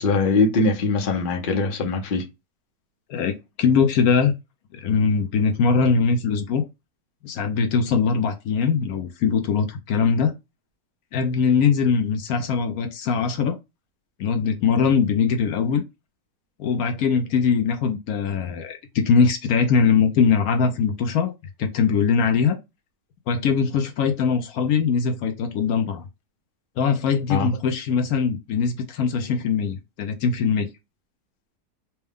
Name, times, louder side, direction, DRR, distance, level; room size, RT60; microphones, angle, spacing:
voice 1, 0.0-2.2 27.3-27.5, left 3 dB, 40° left, 0.8 m, -21 dB
voice 2, 3.1-4.3 4.7-6.6 7.2-10.3 11.1-13.6 14.2-15.8 16.6-21.3 21.6-22.6 23.3-26.1 26.8-30.7, left 6 dB, 70° left, 1.0 m, -21 dB
4.3 x 2.2 x 3.4 m
omnidirectional pair, 1.7 m